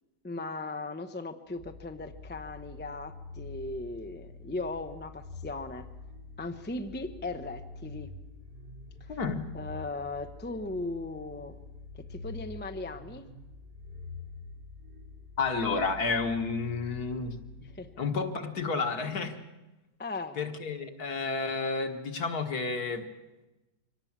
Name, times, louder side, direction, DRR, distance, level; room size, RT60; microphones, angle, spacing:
voice 1, 0.2-5.9 6.4-8.1 9.0-9.2 9.5-11.6 11.9-13.2 17.6-17.9 20.0-20.4, left 2 dB, 10° left, 8 dB, 0.5 m, -38 dB
sound 1, 1.6-18.4, left 3 dB, 35° right, 1.3 m, -46 dB
voice 2, 9.1-9.4 15.4-17.4 18.0-19.4 20.4-23.1, left 4 dB, 60° left, 6 dB, 2.1 m, -31 dB
24.5 x 18.0 x 7.4 m, 1.0 s
omnidirectional pair, 1.9 m